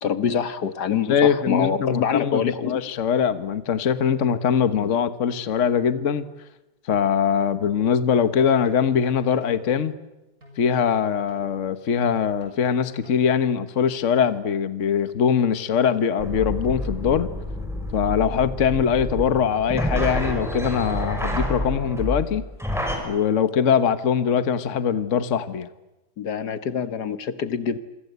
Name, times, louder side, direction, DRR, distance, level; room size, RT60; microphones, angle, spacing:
voice 1, 0.0-2.8 26.2-27.8, left 7 dB, 75° left, 1.8 m, -25 dB
voice 2, 1.1-6.2 6.9-9.9 10.6-17.3 17.9-22.4 23.0-25.7, left 7 dB, 50° left, 1.5 m, -22 dB
sound 1, 8.2-9.6 10.4-11.5 12.2-13.2, equal, 60° right, 7.5 m, -48 dB
sound 2, 16.2-23.0, equal, ahead, 5.8 m, -28 dB
27.0 x 24.5 x 8.1 m
omnidirectional pair, 1.8 m